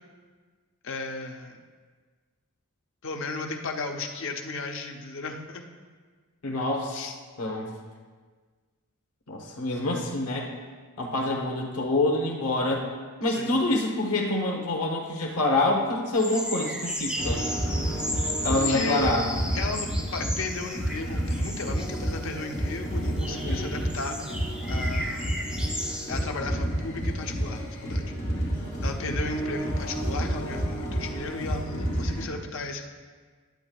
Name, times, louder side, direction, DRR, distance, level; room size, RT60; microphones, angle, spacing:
voice 1, 0.8-1.6 3.0-5.6 6.9-7.1 13.3-13.6 18.5-19.2 19.5-24.2 24.7-25.5 26.1-28.5 28.8-32.9, left 3 dB, 60° left, 3 dB, 0.7 m, -35 dB
voice 2, 6.4-7.0 7.4-7.7 9.3-10.5 11.0-12.9 13.2-17.4 18.4-19.3 23.3-23.7, left 2 dB, 90° left, 0 dB, 1.0 m, -26 dB
sound 1, 16.1-26.2, equal, 5° right, 0.8 m, -35 dB
sound 2, 17.2-32.3, right 1 dB, 35° left, 2.6 m, -30 dB
10.5 x 8.5 x 2.3 m, 1.5 s
head